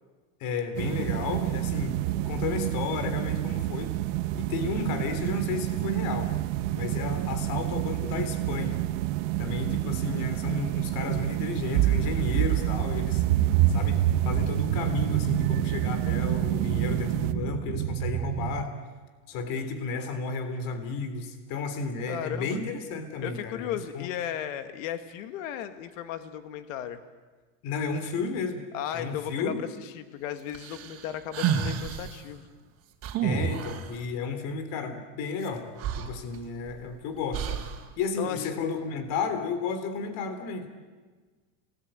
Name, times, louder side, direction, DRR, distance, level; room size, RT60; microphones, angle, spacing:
voice 1, 0.4-3.9 4.4-6.3 6.7-8.8 9.4-18.7 19.3-24.1 27.6-28.6 28.9-29.6 33.2-35.7 36.0-37.7 38.0-40.7, left 4 dB, 60° left, 8 dB, 3.5 m, -33 dB
sound 1, 0.7-17.3, right 15 dB, 75° right, 1.3 m, -30 dB
sound 2, 11.8-18.6, right 12 dB, 55° right, 1.3 m, -27 dB
voice 2, 22.1-22.6 23.2-27.0 28.7-32.5 38.2-38.6, left 10 dB, 80° left, 9 dB, 1.9 m, -35 dB
sound 3, 30.5-32.2 33.0-33.9 35.4-35.5 35.8-36.8 37.3-37.8, right 8 dB, 40° right, 3.6 m, -30 dB
30.0 x 20.0 x 9.1 m, 1.4 s
supercardioid pair, 135°, 39 cm